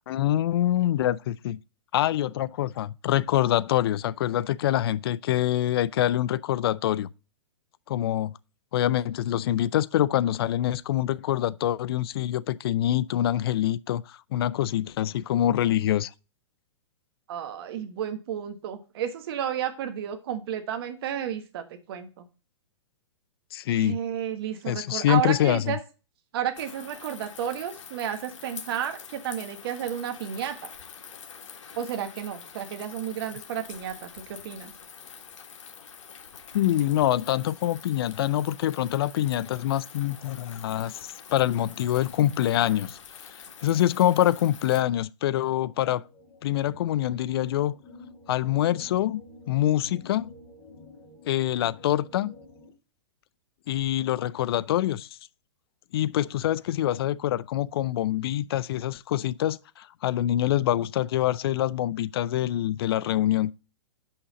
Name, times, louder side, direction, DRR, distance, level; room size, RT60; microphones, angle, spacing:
voice 1, 0.1-1.6 1.9-7.1 7.9-8.3 8.7-16.1 23.5-24.0 24.7-25.7 36.5-43.0 43.6-46.0 46.4-47.7 48.3-49.2 49.5-50.3 51.3-52.3 53.7-55.1 55.9-63.5, left 12 dB, 50° left, 0.4 m, -25 dB
voice 2, 17.3-22.2 23.7-25.8 26.3-30.7 31.8-34.7, right 9 dB, 50° right, 1.4 m, -32 dB
sound 1, 26.6-44.8, left 7 dB, 80° left, 1.5 m, -46 dB
sound 2, 45.4-52.7, left 1 dB, 20° left, 2.6 m, -50 dB
6.9 x 5.7 x 4.0 m
hypercardioid pair, 155°, 16 cm